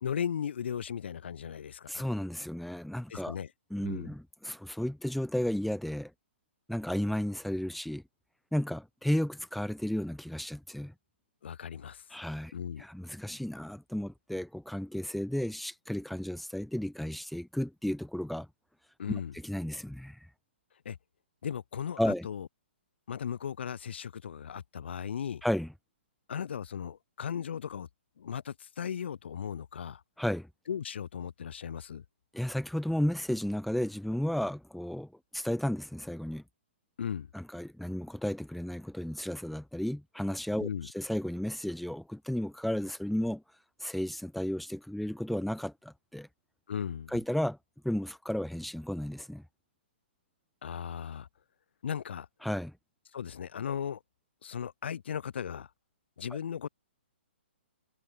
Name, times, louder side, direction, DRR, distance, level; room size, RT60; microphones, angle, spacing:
voice 1, 0.0-2.0 3.1-3.5 3.8-4.1 11.4-12.0 12.5-12.8 19.0-19.3 20.8-21.0 21.4-22.5 23.1-25.4 26.3-27.9 28.2-30.0 30.7-32.0 37.0-37.3 40.6-40.9 46.7-47.2 50.6-51.3 51.8-52.3 53.1-54.0 54.4-55.7 56.2-56.7, left 8 dB, 65° left, 2.8 m, -36 dB
voice 2, 1.9-3.3 3.7-6.1 6.7-8.0 8.5-10.9 12.1-12.5 12.8-18.5 19.1-20.2 22.0-22.2 25.4-25.7 30.2-30.5 32.3-36.4 37.3-40.7 40.9-43.4 43.8-46.3 47.1-47.6 47.8-49.4 52.4-52.7, left 1 dB, ahead, 0.9 m, -33 dB
hypercardioid pair, 130°, 6 cm